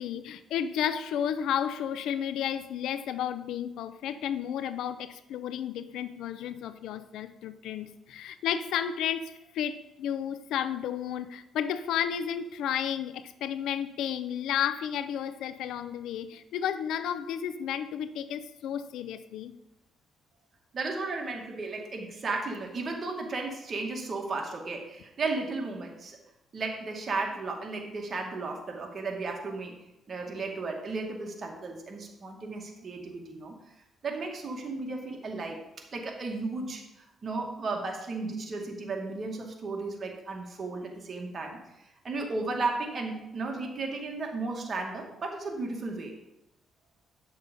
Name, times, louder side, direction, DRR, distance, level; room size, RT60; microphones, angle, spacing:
voice 1, 0.0-19.5, left 9 dB, 85° left, 13 dB, 0.6 m, -32 dB
voice 2, 20.7-26.2 26.5-29.7 30.1-33.5 34.0-35.6 35.9-36.8 37.2-46.1, right 3 dB, 45° right, 1 dB, 2.2 m, -34 dB
9.7 x 6.6 x 5.4 m, 0.89 s
cardioid pair, 90°, 0 cm